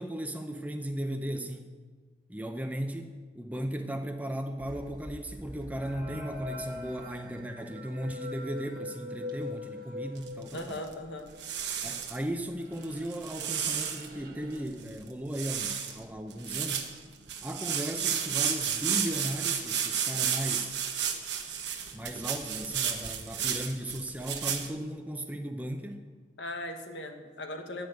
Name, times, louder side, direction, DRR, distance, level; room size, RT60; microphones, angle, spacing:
voice 1, 0.0-1.7 2.3-10.8 11.8-16.9 17.4-20.8 21.9-26.0, right 1 dB, 10° right, 5 dB, 0.6 m, -36 dB
sound 1, 4.6-11.2 11.4-12.2 12.5-14.6, left 2 dB, 50° right, 1.3 m, -43 dB
sound 2, 10.2-10.9 11.4-12.2 12.8-14.1 14.6-14.7 14.8-15.1 15.3-16.0 16.3-24.7, right 8 dB, 75° right, 1.0 m, -32 dB
voice 2, 10.5-11.3 26.4-27.9, left 1 dB, 90° left, 4 dB, 1.2 m, -38 dB
10.5 x 5.2 x 7.8 m, 1.5 s
head